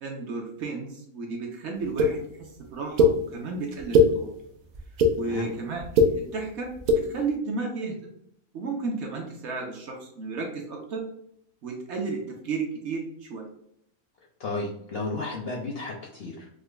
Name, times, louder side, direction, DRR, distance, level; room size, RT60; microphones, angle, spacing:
voice 1, 0.0-4.3 5.1-5.9 6.1-8.1 8.5-11.0 11.6-13.5, right 4 dB, 60° right, 1 dB, 0.8 m, -33 dB
sound 1, 2.0-2.1 3.0-3.1 3.7-4.1 4.7-5.1 5.8-6.1 6.8-7.0, left 1 dB, 90° right, 0.4 m, -18 dB
voice 2, 5.2-5.5 14.4-16.5, left 3 dB, 65° left, -1 dB, 0.6 m, -33 dB
4.9 x 2.1 x 2.2 m, 0.71 s
omnidirectional pair, 1.5 m